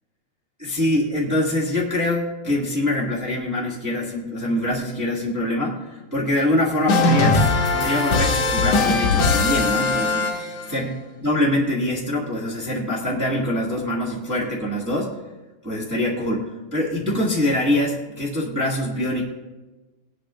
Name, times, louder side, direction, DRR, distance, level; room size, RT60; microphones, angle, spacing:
voice 1, 0.6-10.3 10.7-15.1 15.6-19.2, left 1 dB, 25° right, -5 dB, 0.3 m, -24 dB
sound 1, 6.9-10.8, left 3 dB, 55° left, 2.1 m, -20 dB
18.5 x 11.0 x 2.5 m, 1.2 s
omnidirectional pair, 4.2 m